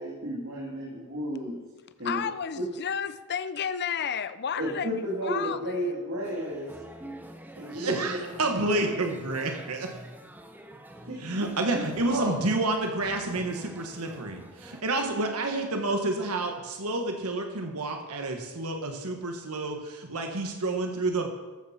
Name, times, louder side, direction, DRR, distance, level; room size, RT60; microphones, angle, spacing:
voice 1, 0.0-1.6 2.0-2.2 2.6-2.7 4.6-6.7 7.6-8.2 8.6-8.8 11.0-11.8 12.1-12.3, equal, 65° right, 3.2 m, -32 dB
voice 2, 2.0-4.9 5.2-5.6, left 7 dB, 50° left, 0.6 m, -31 dB
sound 1, 6.2-14.8, right 1 dB, 10° right, 0.9 m, -46 dB
voice 3, 7.7-9.9 11.2-21.3, right 2 dB, 80° right, 1.5 m, -29 dB
14.0 x 11.5 x 4.4 m
head